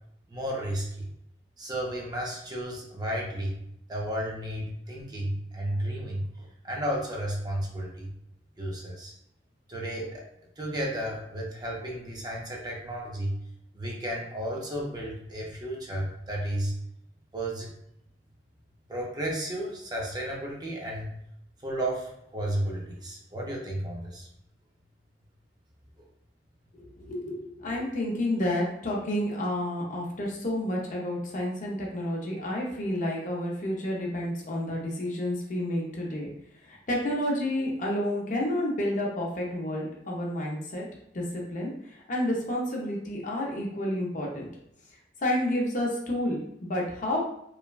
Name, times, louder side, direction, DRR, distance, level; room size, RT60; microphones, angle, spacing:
voice 1, 0.3-1.1 1.6-3.6 3.9-8.1 8.6-9.1 9.7-10.3 10.6-13.4 13.7-16.7 17.3-17.7 18.9-21.1 21.6-24.3, right 1 dB, 25° right, -2 dB, 0.5 m, -33 dB
voice 2, 27.0-36.3 36.7-40.9 41.1-44.5 45.2-47.2, left 1 dB, 45° left, -1 dB, 0.6 m, -30 dB
3.1 x 2.1 x 2.3 m, 0.77 s
head